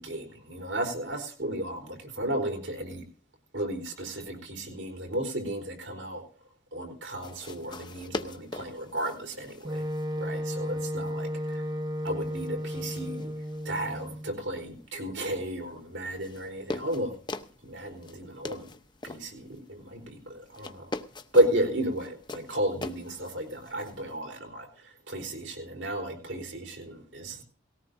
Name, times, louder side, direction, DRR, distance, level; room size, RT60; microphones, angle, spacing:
voice 1, 0.0-3.0 3.5-6.2 6.7-9.8 10.2-11.6 12.0-13.3 13.6-17.1 17.6-18.7 19.0-20.9 21.3-27.4, right 1 dB, 80° right, 4 dB, 4.4 m, -33 dB
sound 1, 7.2-24.2, left 2 dB, 25° left, 0.8 m, -44 dB
Wind instrument woodwind instrument, 9.6-14.3, equal, 20° right, 0.9 m, -33 dB
19.0 x 17.5 x 2.7 m, 0.41 s
head